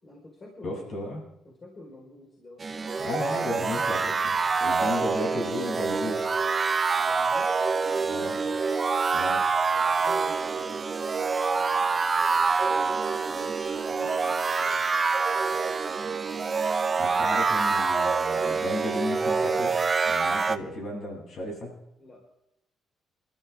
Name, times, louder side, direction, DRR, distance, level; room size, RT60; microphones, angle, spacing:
voice 1, 0.0-3.1 6.9-7.5 8.0-8.6 9.2-16.0 16.8-17.4 22.0-22.2, left 1 dB, 35° left, -2 dB, 4.7 m, -49 dB
voice 2, 0.6-1.2 3.0-6.2 8.0-8.4 9.1-9.5 17.0-19.7 20.1-21.7, left 1 dB, 60° left, 0 dB, 7.9 m, -34 dB
sound 1, 2.6-20.6, right 4 dB, 35° right, 0.9 m, -26 dB
29.0 x 13.0 x 3.7 m, 0.83 s
cardioid pair, 90°, 0 cm